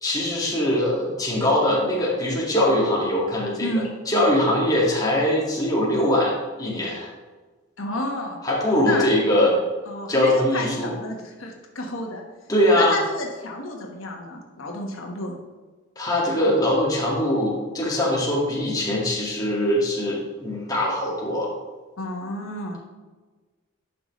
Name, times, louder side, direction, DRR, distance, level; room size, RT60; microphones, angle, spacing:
voice 1, 0.0-3.7 4.1-7.1 8.4-9.6 10.1-11.0 12.5-13.0 16.0-21.5, left 1 dB, 20° left, -4 dB, 1.9 m, -22 dB
voice 2, 3.6-3.9 7.8-8.4 8.8-9.1 9.9-12.2 12.8-15.3 22.0-22.8, left 1 dB, 90° left, 1 dB, 1.4 m, -31 dB
10.5 x 5.9 x 3.1 m, 1.3 s
head